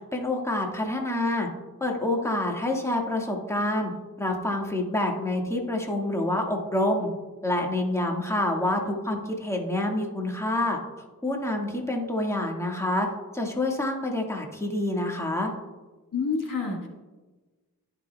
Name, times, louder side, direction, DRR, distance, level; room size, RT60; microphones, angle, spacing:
voice 1, 0.1-1.5 1.8-3.9 4.2-7.1 7.4-10.8 11.2-13.1 13.3-15.5, left 1 dB, 5° left, 0 dB, 1.7 m, -27 dB
voice 2, 16.1-16.9, left 4 dB, 55° left, 0 dB, 1.7 m, -28 dB
16.5 x 6.0 x 2.3 m, 1.2 s
cardioid pair, 50°, 37 cm